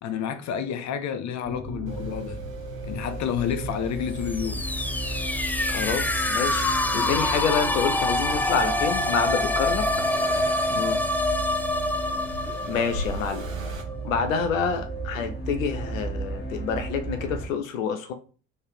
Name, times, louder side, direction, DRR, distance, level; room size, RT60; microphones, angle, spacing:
voice 1, 0.0-2.4 2.8-4.6 10.7-11.1, left 8 dB, 45° left, 0.7 m, -30 dB
sound 1, 1.4-17.5, right 3 dB, 25° left, 1.9 m, -35 dB
Accelerating revving vroom, 1.9-13.8, left 2 dB, 90° right, 0.7 m, -39 dB
sound 2, 4.2-13.9, left 1 dB, 5° left, 0.3 m, -26 dB
voice 2, 5.7-9.8 12.7-13.4 14.0-18.1, left 6 dB, 80° left, 0.6 m, -27 dB
4.3 x 3.3 x 3.3 m
figure-of-eight pair, 50°, 39 cm